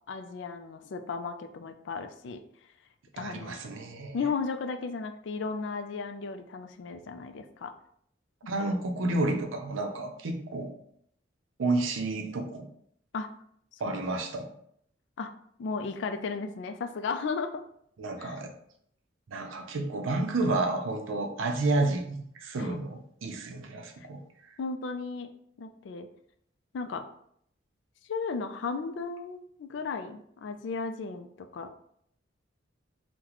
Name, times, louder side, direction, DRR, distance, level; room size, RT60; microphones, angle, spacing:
voice 1, 0.1-2.4 3.1-3.5 4.1-7.7 13.1-13.3 13.9-14.0 15.2-15.3 15.6-17.6 18.2-18.4 22.6-22.8 24.6-25.3 25.6-26.1 26.7-27.1 28.1-31.7, left 4 dB, 65° left, 8 dB, 0.3 m, -35 dB
voice 2, 3.2-4.2 8.5-10.7 11.6-12.7 13.8-14.5 18.0-18.5 19.3-24.2, right 2 dB, 85° right, 4 dB, 0.5 m, -30 dB
2.9 x 2.1 x 3.8 m, 0.69 s
head